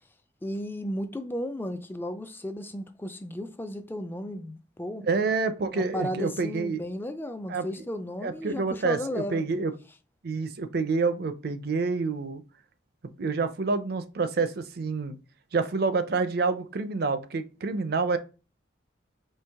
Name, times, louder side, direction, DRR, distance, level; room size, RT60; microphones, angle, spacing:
voice 1, 0.4-5.1 5.7-9.4, equal, 10° left, 0.3 m, -34 dB
voice 2, 5.1-6.8 7.5-7.7 8.2-9.7 10.2-12.4 13.2-15.2 15.5-18.2, right 4 dB, 50° right, 0.5 m, -28 dB
4.6 x 2.8 x 3.5 m
head